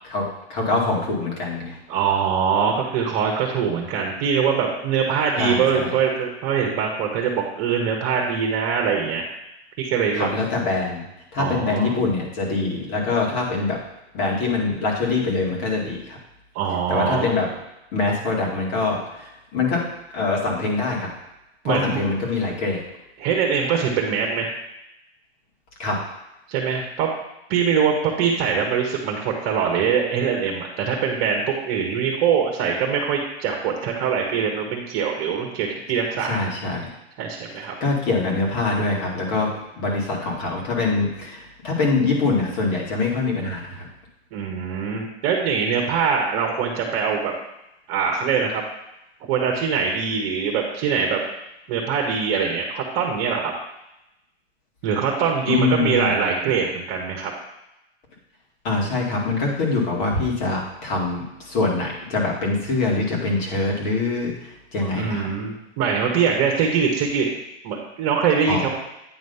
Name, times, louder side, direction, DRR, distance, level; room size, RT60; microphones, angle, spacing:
voice 1, 0.1-1.8 5.4-5.9 10.1-11.1 11.3-13.8 14.1-16.2 16.9-17.5 17.9-19.8 20.1-21.1 21.6-22.8 25.8-26.0 36.2-36.9 37.8-39.5 39.8-43.9 55.5-56.1 58.6-65.3 68.5-68.7, left 3 dB, 40° left, -2 dB, 2.2 m, -24 dB
voice 2, 1.9-9.2 9.8-10.3 11.4-11.9 16.5-17.4 21.6-22.0 23.2-24.5 26.5-27.1 27.5-36.4 37.2-37.7 44.3-47.3 47.9-48.6 49.3-51.2 51.7-53.5 54.8-57.3 64.9-67.3 67.6-68.7, right 6 dB, 40° right, 1 dB, 1.3 m, -23 dB
9.0 x 3.1 x 5.6 m, 0.89 s
hypercardioid pair, 140°, 33 cm